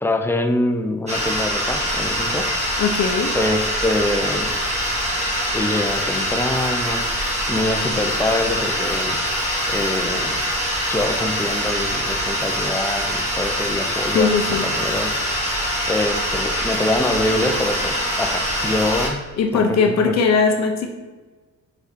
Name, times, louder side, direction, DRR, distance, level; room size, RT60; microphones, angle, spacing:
voice 1, 0.0-2.5 3.3-4.5 5.5-7.0 7.5-9.2 9.7-10.4 10.9-15.2 15.9-19.2 19.5-20.2, left 1 dB, 10° left, 5 dB, 0.7 m, -24 dB
sound 1, 1.1-19.1, equal, 20° right, 1.8 m, -24 dB
voice 2, 2.8-3.3 14.1-14.7 19.4-20.9, left 5 dB, 60° left, 4 dB, 0.7 m, -19 dB
5.3 x 4.7 x 4.3 m, 1.3 s
cardioid pair, 90°, 30 cm